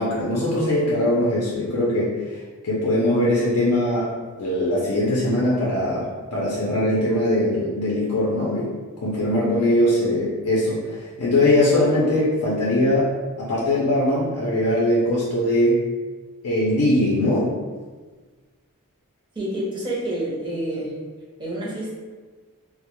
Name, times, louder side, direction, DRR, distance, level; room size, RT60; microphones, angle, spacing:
voice 1, 0.0-2.1 2.6-4.1 4.4-6.1 6.3-8.7 9.0-13.1 13.4-15.8 16.4-17.5, left 1 dB, 85° left, -6 dB, 0.5 m, -21 dB
voice 2, 19.4-20.9 21.4-21.9, right 1 dB, 20° right, -5 dB, 0.5 m, -28 dB
2.1 x 2.0 x 2.9 m, 1.4 s
head